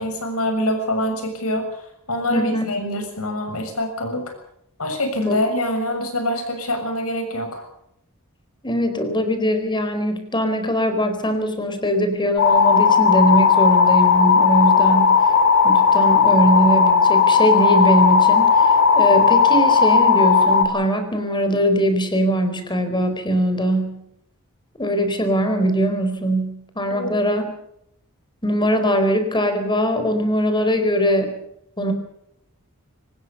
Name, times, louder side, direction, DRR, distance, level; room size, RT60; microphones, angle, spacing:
voice 1, 0.0-1.8 2.1-4.2 4.8-7.6 26.9-27.1, left 1 dB, 70° left, 5 dB, 7.0 m, -25 dB
voice 2, 2.3-2.6 5.2-5.4 8.6-15.3 15.6-24.0 24.8-27.5 28.4-31.4 31.8-31.9, equal, 20° left, 8 dB, 4.3 m, -21 dB
sound 1, 12.4-20.7, left 5 dB, 55° left, 3.1 m, -15 dB
24.0 x 19.5 x 6.9 m, 0.76 s
head